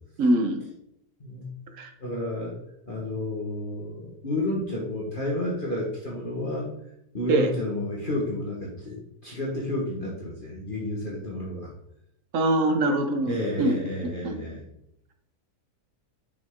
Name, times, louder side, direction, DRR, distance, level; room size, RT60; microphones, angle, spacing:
voice 1, 0.2-0.6 1.8-1.9 7.3-7.5 12.3-13.8 14.2-14.4, right 1 dB, 55° right, 5 dB, 1.3 m, -23 dB
voice 2, 2.0-2.6 2.9-6.7 7.1-11.7 13.2-14.6, left 1 dB, 35° left, -4 dB, 1.5 m, -31 dB
6.2 x 5.8 x 3.7 m, 0.79 s
omnidirectional pair, 1.7 m